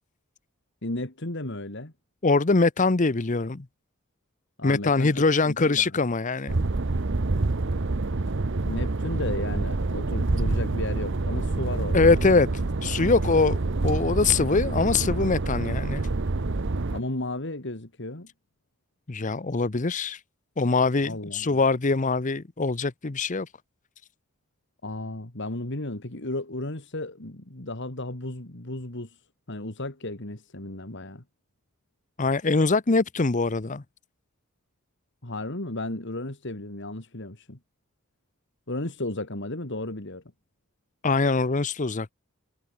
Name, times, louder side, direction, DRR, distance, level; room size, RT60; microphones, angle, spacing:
voice 1, 0.8-1.9 4.6-5.9 8.6-12.1 16.9-18.3 21.0-21.6 24.8-29.2 29.5-31.2 35.2-37.6 38.7-40.2, left 2 dB, 55° left, 2.5 m, -34 dB
voice 2, 2.2-3.6 4.6-6.6 11.9-12.5 12.8-13.6 13.8-16.0 19.1-20.2 20.6-23.5 32.2-33.8 41.0-42.1, left 3 dB, 35° left, 0.8 m, -23 dB
sound 1, 6.5-17.0, right 2 dB, 60° right, 0.9 m, -27 dB
head